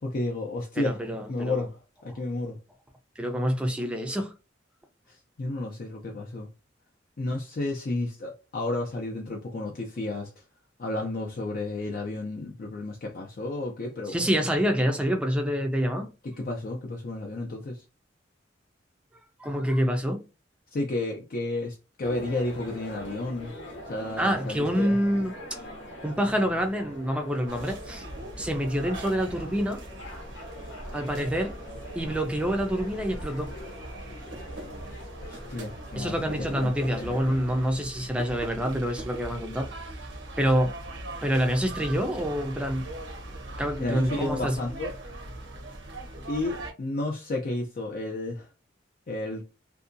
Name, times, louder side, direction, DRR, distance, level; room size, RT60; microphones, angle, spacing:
voice 1, 0.0-1.0 1.3-1.8 2.0-2.6 5.1-6.5 7.2-10.3 10.8-14.3 16.2-17.8 20.7-23.5 23.9-25.0 35.2-37.4 43.8-44.9 46.3-48.5 49.1-49.4, left 2 dB, 50° left, 0.5 m, -32 dB
voice 2, 0.8-1.7 2.1-2.2 3.2-4.3 14.1-16.1 19.4-20.2 24.2-25.6 26.0-28.1 28.4-29.8 30.9-31.5 31.9-33.5 35.9-39.7 40.4-40.7 41.2-42.9 43.6-44.6, equal, 5° right, 0.4 m, -27 dB
sound 1, 22.0-37.7, equal, 80° left, 0.8 m, -42 dB
sound 2, 27.5-46.7, right 1 dB, 70° right, 0.7 m, -40 dB
2.7 x 2.3 x 2.5 m
head